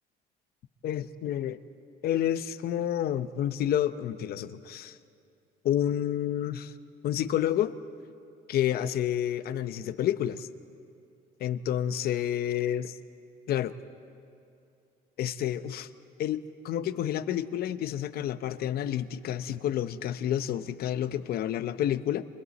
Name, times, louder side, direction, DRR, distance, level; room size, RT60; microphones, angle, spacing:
voice 1, 0.8-1.6 2.0-5.0 5.6-6.7 7.0-7.7 8.5-10.5 11.4-13.0 13.5-13.8 15.2-15.9 16.2-22.3, left 11 dB, 65° left, 12 dB, 0.8 m, -29 dB
29.5 x 28.0 x 4.2 m, 2.5 s
cardioid pair, 110°, 17 cm